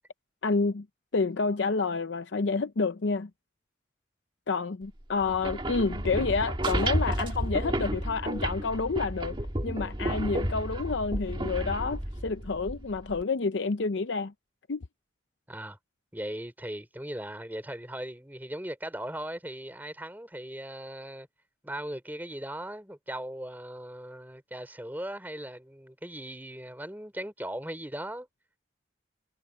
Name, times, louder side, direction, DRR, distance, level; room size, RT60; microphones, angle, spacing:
voice 1, 0.4-0.9 1.1-3.3 4.5-9.4 9.6-14.3 14.7-14.8, left 4 dB, 70° left, 0.6 m, -29 dB
sound 1, 5.2-13.2, right 1 dB, 25° right, 1.6 m, -31 dB
voice 2, 15.5-15.8 16.1-21.3 21.6-28.3, right 1 dB, 10° right, 3.4 m, -38 dB
head